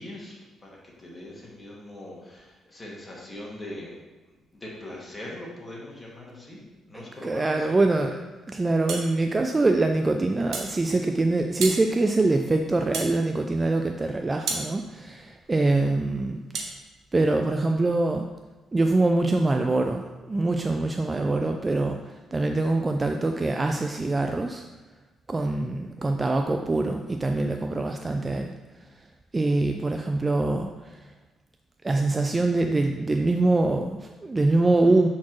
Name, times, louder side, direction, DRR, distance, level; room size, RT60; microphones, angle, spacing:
voice 1, 0.0-3.9 4.5-6.6 6.9-7.8, left 1 dB, 20° left, -4 dB, 1.8 m, -41 dB
voice 2, 6.9-8.2 8.5-16.6 17.1-18.3 18.7-24.6 25.3-28.5 29.3-31.0 31.8-35.1, right 2 dB, 25° right, 4 dB, 0.3 m, -24 dB
sound 1, 8.9-9.1 10.5-10.7 11.6-11.8 12.9-13.2 14.5-14.7 16.5-16.7, right 4 dB, 75° right, 0.9 m, -30 dB
7.1 x 4.3 x 3.1 m, 1.2 s
cardioid pair, 90°, 0 cm